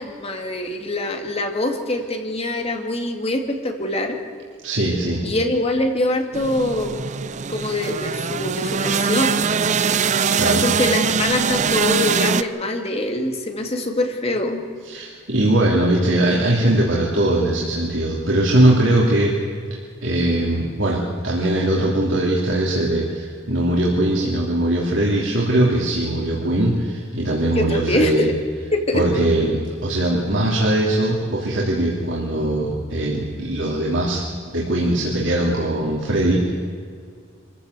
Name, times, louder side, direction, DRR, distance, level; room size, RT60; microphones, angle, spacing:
voice 1, 0.0-4.2 5.2-7.0 7.5-9.4 10.3-14.6 27.6-28.3 28.7-29.0, left 1 dB, 35° left, 4 dB, 2.2 m, -24 dB
voice 2, 4.6-5.2 10.4-10.6 14.8-19.4 20.0-28.3 28.9-34.2 34.5-36.5, right 1 dB, 90° right, -4 dB, 3.0 m, -20 dB
sound 1, 6.3-12.4, right 6 dB, 40° right, 0.5 m, -22 dB
25.0 x 15.0 x 8.2 m, 2.1 s
head